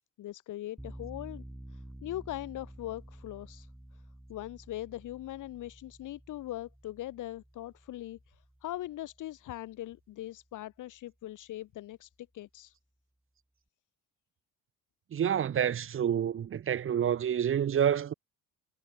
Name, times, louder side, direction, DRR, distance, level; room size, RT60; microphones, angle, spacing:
voice 1, 0.2-1.4 1.7-4.0 4.3-12.7, left 14 dB, 70° left, 1.5 m, -41 dB
sound 1, 0.8-9.6, right 1 dB, 5° right, 1.9 m, -50 dB
voice 2, 15.1-18.1, right 9 dB, 40° right, 0.9 m, -28 dB
cardioid pair, 90°, 33 cm